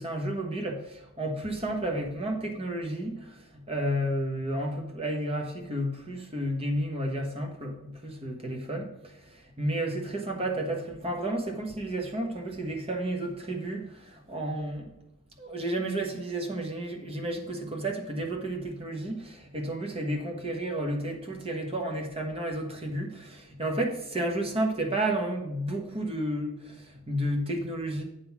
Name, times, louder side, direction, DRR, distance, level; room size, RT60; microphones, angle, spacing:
voice 1, 0.0-14.9 15.4-28.0, right 1 dB, 25° right, 2 dB, 1.3 m, -32 dB
8.5 x 3.8 x 6.0 m, 0.87 s
head